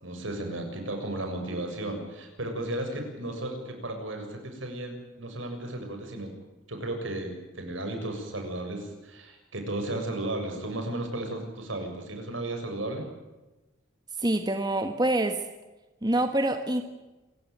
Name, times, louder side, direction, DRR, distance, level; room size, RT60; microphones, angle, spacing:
voice 1, 0.0-6.3 6.7-13.1, right 1 dB, 75° right, 4 dB, 7.2 m, -34 dB
voice 2, 14.2-15.4 16.0-16.8, right 1 dB, 20° right, 6 dB, 1.6 m, -26 dB
27.5 x 16.0 x 9.5 m, 1.1 s
head